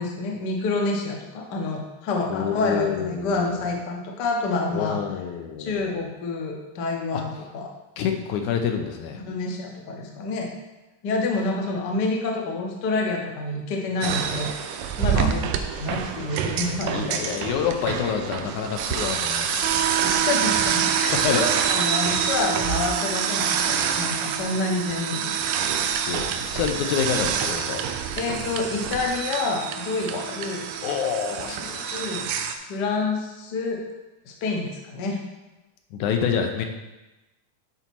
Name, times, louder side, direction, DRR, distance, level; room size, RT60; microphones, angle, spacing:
voice 1, 0.0-5.0 5.6-7.7 9.3-10.5 11.0-15.5 15.8-17.4 20.0-25.3 25.8-26.0 28.2-30.6 31.6-32.3 32.6-33.8 34.2-35.2, left 3 dB, 65° left, 0 dB, 1.0 m, -28 dB
voice 2, 2.3-3.6 4.7-6.0 7.1-7.2 8.0-9.2 15.1-15.3 16.9-19.7 21.1-21.4 26.1-27.8 30.1-30.4 30.8-32.1 35.9-36.7, left 7 dB, 90° left, 4 dB, 2.3 m, -27 dB
sound 1, 14.0-32.5, right 8 dB, 90° right, 2.1 m, -26 dB
9.6 x 4.1 x 4.5 m, 1.1 s
omnidirectional pair, 3.4 m